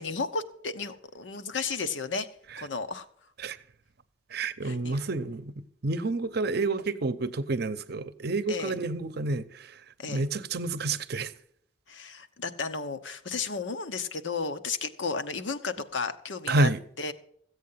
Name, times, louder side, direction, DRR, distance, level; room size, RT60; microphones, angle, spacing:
voice 1, 0.0-2.3 2.6-3.1 4.6-5.0 8.5-8.7 10.0-10.2 11.9-16.7 17.0-17.1, left 4 dB, 75° left, 0.9 m, -33 dB
voice 2, 4.3-11.3 16.5-16.8, right 2 dB, 55° right, 0.7 m, -29 dB
14.5 x 8.2 x 5.6 m
head